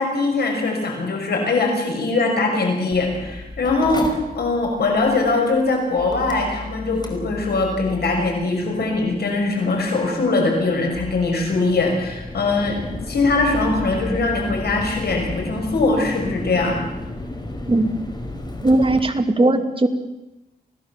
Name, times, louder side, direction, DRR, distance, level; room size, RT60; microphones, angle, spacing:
voice 1, 0.0-16.8, left 3 dB, 85° left, 2 dB, 6.2 m, -21 dB
Mechanical fan, 2.9-19.0, left 1 dB, 25° left, 4.8 m, -34 dB
voice 2, 18.6-19.9, right 2 dB, 35° right, 5 dB, 2.6 m, -18 dB
27.0 x 17.5 x 7.4 m, 0.96 s
wide cardioid pair, 85°, 16 cm